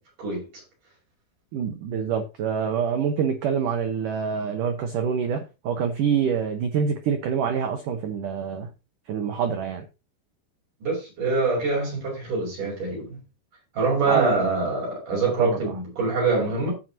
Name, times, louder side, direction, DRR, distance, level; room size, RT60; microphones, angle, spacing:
voice 1, 1.5-8.7 9.1-9.8 14.1-14.4 15.2-15.6, right 7 dB, 90° right, 1.8 m, -26 dB
voice 2, 10.8-13.2 13.8-16.7, right 3 dB, 45° right, 7.4 m, -25 dB
15.5 x 6.3 x 2.8 m
omnidirectional pair, 5.4 m